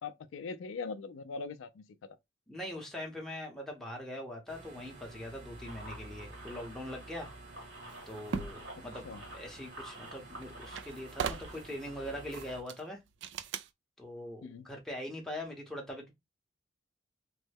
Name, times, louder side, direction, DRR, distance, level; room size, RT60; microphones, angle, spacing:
voice 1, 0.0-2.2 8.8-9.2 14.4-14.7, left 4 dB, 90° left, 0.4 m, -42 dB
voice 2, 2.5-7.3 8.1-9.1 9.3-13.0 14.0-16.1, left 1 dB, ahead, 0.8 m, -42 dB
sound 1, 4.5-12.6, right 2 dB, 40° right, 0.8 m, -51 dB
sound 2, 5.6-12.4, right 1 dB, 85° right, 1.7 m, -51 dB
sound 3, 7.9-8.7 10.1-10.2 10.4-11.8 12.3-12.8 13.2-13.7, right 6 dB, 65° right, 0.3 m, -38 dB
3.1 x 2.1 x 3.3 m
head